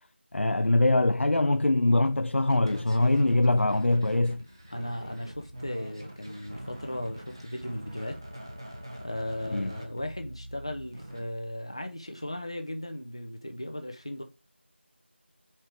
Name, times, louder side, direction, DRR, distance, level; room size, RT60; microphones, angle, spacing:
voice 1, 0.3-4.4 9.5-9.8, left 2 dB, 75° left, 0.4 m, -23 dB
sound 1, 2.5-11.2, right 1 dB, 20° right, 0.7 m, -43 dB
voice 2, 4.7-8.2 9.0-14.2, left 1 dB, 25° left, 0.7 m, -36 dB
4.5 x 4.4 x 5.1 m
figure-of-eight pair, 175°, 7 cm